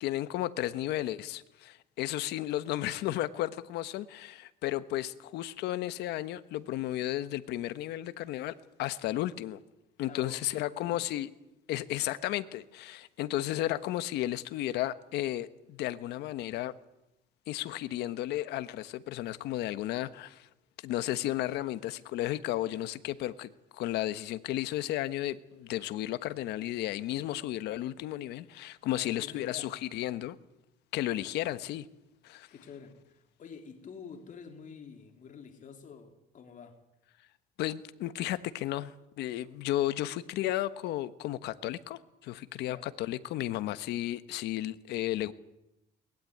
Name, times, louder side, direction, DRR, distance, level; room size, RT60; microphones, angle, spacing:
voice 1, 0.0-9.6 10.0-11.3 11.7-16.7 17.5-20.5 20.8-30.3 30.9-31.8 32.2-32.5 37.6-45.3, left 14 dB, 85° left, 1.3 m, -33 dB
voice 2, 10.1-11.1 28.9-29.8 32.5-36.8 42.6-42.9, left 6 dB, 50° left, 3.3 m, -48 dB
22.5 x 20.0 x 9.4 m
cardioid pair, 110°, 17 cm